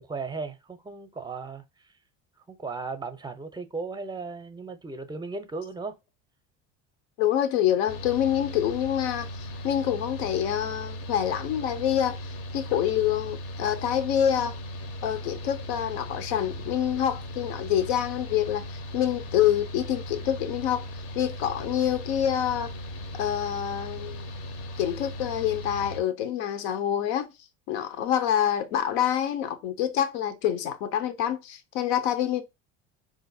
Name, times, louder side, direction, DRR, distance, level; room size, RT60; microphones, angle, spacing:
voice 1, 0.0-1.6 2.5-6.0, right 4 dB, 15° right, 0.6 m, -36 dB
voice 2, 7.2-14.5 15.0-20.8 21.2-22.7 23.2-24.2 24.8-27.3 27.7-32.4, left 10 dB, 80° left, 0.7 m, -26 dB
Mechanical fan, 7.9-26.0, equal, 45° left, 0.6 m, -38 dB
3.8 x 2.6 x 2.5 m
supercardioid pair, 100°, 32 cm